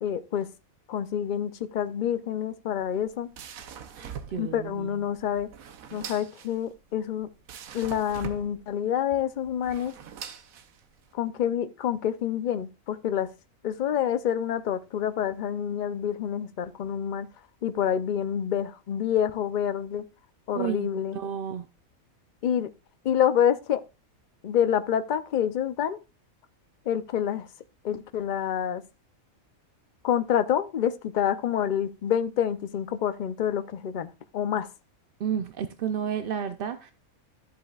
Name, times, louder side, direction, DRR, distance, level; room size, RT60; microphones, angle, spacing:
voice 1, 0.0-0.5 0.9-3.3 4.4-5.5 5.9-7.3 7.7-9.9 11.1-13.3 13.6-17.3 17.6-20.0 20.5-21.2 22.4-22.7 23.0-23.8 24.4-26.0 26.9-27.5 27.8-28.8 30.0-34.7, left 9 dB, 55° left, 0.5 m, -27 dB
sound 1, 2.8-11.1, right 8 dB, 75° right, 1.2 m, -43 dB
voice 2, 3.9-5.0 20.5-21.7 35.2-36.9, right 8 dB, 60° right, 0.6 m, -32 dB
13.0 x 7.7 x 2.4 m
omnidirectional pair, 1.5 m